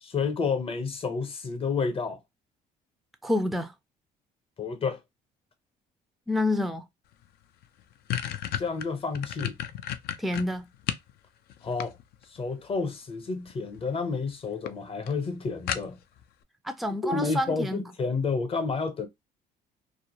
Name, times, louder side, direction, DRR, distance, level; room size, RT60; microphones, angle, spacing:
voice 1, 0.0-2.2 4.6-5.0 8.6-9.5 11.6-11.9 12.3-16.0 17.0-19.1, left 4 dB, 35° left, 0.8 m, -30 dB
voice 2, 3.2-3.7 6.3-6.9 10.2-10.7 16.6-17.8, left 1 dB, ahead, 0.4 m, -28 dB
sound 1, 7.2-7.3 7.6-11.1 11.5-12.4 13.5-13.9 14.2-14.3 14.7-14.8 15.1-15.2 15.7-16.2, left 10 dB, 70° left, 0.4 m, -33 dB
2.4 x 2.1 x 2.8 m
cardioid pair, 110°, 17 cm